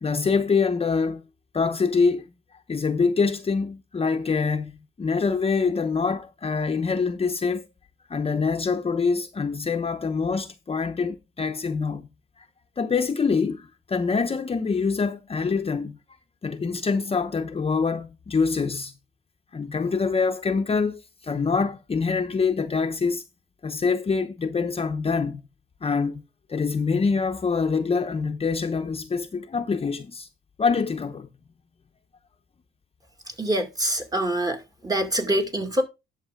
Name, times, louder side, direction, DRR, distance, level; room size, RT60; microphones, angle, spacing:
voice 1, 0.0-1.2 1.5-2.2 2.7-7.7 8.1-12.1 12.8-16.0 16.4-18.9 19.5-23.2 23.6-25.4 25.8-26.2 26.5-30.3 30.6-31.3, left 5 dB, 30° left, 0.9 m, -25 dB
voice 2, 33.4-34.6 34.8-35.8, right 1 dB, 20° right, 2.1 m, -25 dB
11.0 x 6.6 x 3.7 m
cardioid pair, 90°, 20 cm